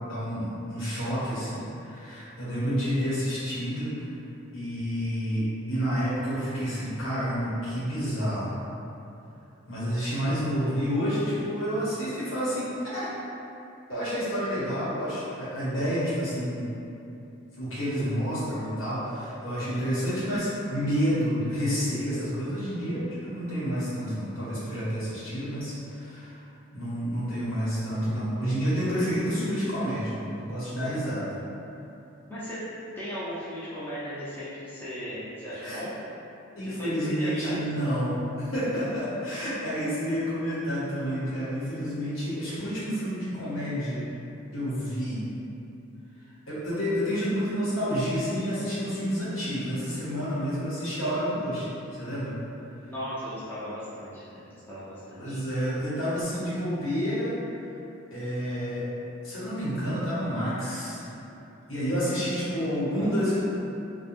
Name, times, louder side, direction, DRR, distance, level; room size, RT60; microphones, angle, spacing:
voice 1, 0.0-4.0 4.5-8.5 9.7-13.1 13.9-16.7 17.6-26.4 26.7-31.3 35.5-35.8 36.6-44.1 44.5-45.2 46.5-51.7 51.9-52.4 55.2-57.4 58.1-58.8 59.2-61.0 61.7-63.4, equal, 75° left, -10 dB, 1.0 m, -29 dB
voice 2, 33.0-35.9 36.6-37.6 52.9-55.4, equal, 10° left, -12 dB, 0.5 m, -37 dB
3.1 x 2.1 x 2.4 m, 2.8 s
head